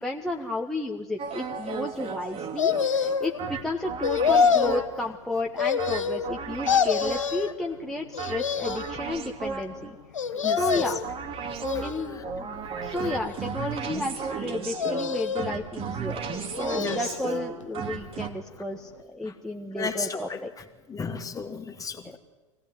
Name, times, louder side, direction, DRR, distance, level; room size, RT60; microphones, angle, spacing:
voice 1, 0.0-10.0 10.5-11.0 11.8-20.5, left 2 dB, 5° left, 0 dB, 1.5 m, -32 dB
sound 1, 1.2-5.1 5.8-7.5 8.2-9.9 10.6-18.3, right 6 dB, 35° right, 2.3 m, -35 dB
sound 2, 2.6-3.4 4.0-4.8 5.6-6.4 6.7-7.5 8.1-9.0 10.1-11.1 11.6-12.3 12.9-13.7 14.7-15.6 16.3-17.2 17.6-17.7, left 6 dB, 85° left, 1.2 m, -26 dB
voice 2, 10.3-10.8 11.7-11.8 12.1-12.2 16.8-17.0 19.8-20.4 20.9-22.2, left 5 dB, 20° left, 6 dB, 2.5 m, -34 dB
23.5 x 17.0 x 9.5 m, 1.3 s
hypercardioid pair, 90°, 16 cm